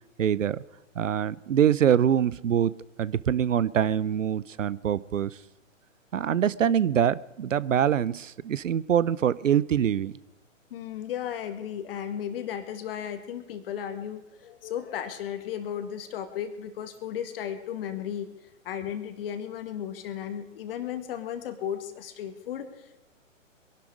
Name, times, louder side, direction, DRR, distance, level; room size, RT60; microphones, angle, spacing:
voice 1, 0.2-0.6 1.0-2.7 3.0-5.3 6.1-10.1, right 9 dB, 70° right, 20 dB, 0.7 m, -24 dB
voice 2, 10.7-18.3 18.6-23.0, left 9 dB, 45° left, 8 dB, 2.0 m, -35 dB
23.0 x 11.5 x 5.0 m, 1.0 s
figure-of-eight pair, 125°, 39 cm